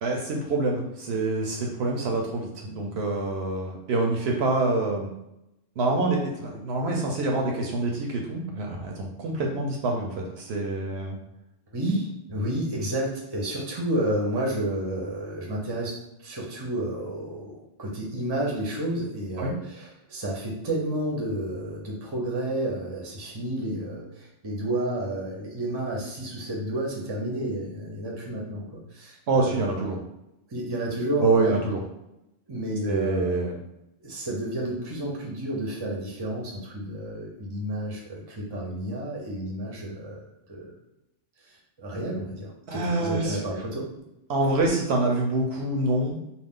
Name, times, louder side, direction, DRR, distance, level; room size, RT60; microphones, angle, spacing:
voice 1, 0.0-5.1 5.8-11.2 19.4-19.5 29.3-30.0 31.2-31.8 32.8-33.6 42.7-43.4 44.3-46.2, right 2 dB, 70° right, 0 dB, 0.8 m, -26 dB
voice 2, 11.7-15.9 16.2-17.5 17.8-29.5 30.5-31.5 32.5-33.3 34.0-40.7 41.4-43.8, right 1 dB, 25° right, -2 dB, 0.6 m, -31 dB
2.4 x 2.3 x 3.5 m, 0.88 s
omnidirectional pair, 1.2 m